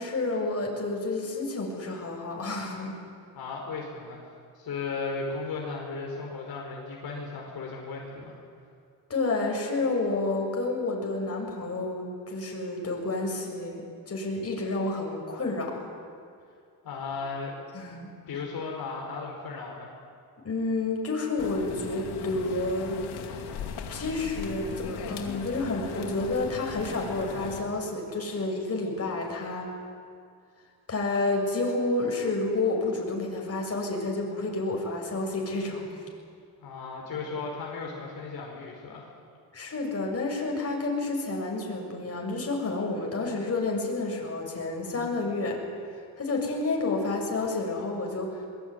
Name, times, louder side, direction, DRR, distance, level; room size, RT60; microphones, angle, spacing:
voice 1, 0.0-2.9 9.1-15.9 17.5-18.1 20.4-23.1 23.9-29.7 30.9-35.9 39.5-45.6 45.9-48.5, left 2 dB, 40° left, 0 dB, 7.1 m, -30 dB
voice 2, 3.4-8.3 16.8-17.5 18.3-19.9 36.6-39.1, left 4 dB, 65° left, -1 dB, 5.2 m, -36 dB
sound 1, 21.4-27.6, left 7 dB, 90° left, 2.7 m, -38 dB
22.0 x 21.5 x 9.6 m, 2.3 s
cardioid pair, 85°, 39 cm